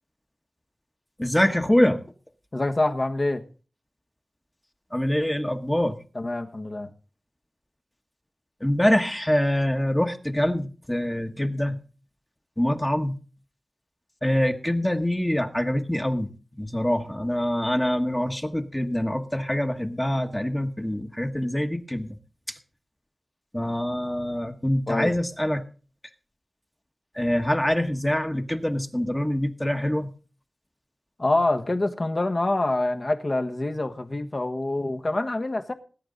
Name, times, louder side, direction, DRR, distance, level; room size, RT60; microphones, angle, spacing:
voice 1, 1.2-2.0 4.9-6.0 8.6-11.8 12.6-13.2 14.2-16.3 16.6-22.2 22.5-22.6 23.5-25.6 27.1-30.1, left 1 dB, 10° left, 1.2 m, -25 dB
voice 2, 2.5-3.4 6.1-6.9 24.9-25.1 31.2-35.7, left 2 dB, 45° left, 1.3 m, -26 dB
20.0 x 9.6 x 3.9 m
wide cardioid pair, 75°, 0 cm